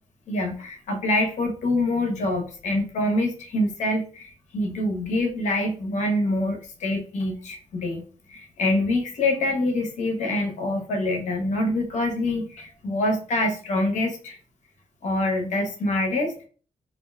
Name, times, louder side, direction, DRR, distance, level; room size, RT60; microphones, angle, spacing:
voice 1, 0.3-8.0 8.3-14.4 15.0-16.4, left 1 dB, 80° left, 3 dB, 0.7 m, -25 dB
2.5 x 2.2 x 3.4 m, 0.41 s
cardioid pair, 60°, 12 cm